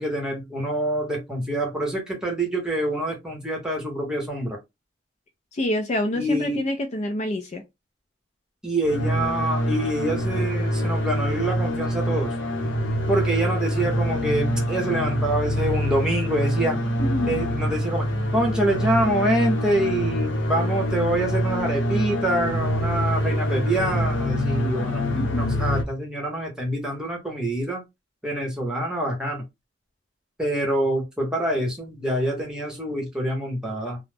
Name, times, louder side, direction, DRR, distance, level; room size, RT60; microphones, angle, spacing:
voice 1, 0.0-4.6 6.1-6.7 8.6-12.3 13.1-16.8 17.3-18.1 18.3-25.1 25.3-27.8 28.2-29.4 30.4-34.0, right 1 dB, 5° right, 0.9 m, -26 dB
voice 2, 5.5-7.6 17.0-17.4 25.2-25.6, left 1 dB, 35° left, 0.4 m, -27 dB
sound 1, 8.8-25.8, equal, 70° left, 0.7 m, -25 dB
2.3 x 2.0 x 3.2 m
head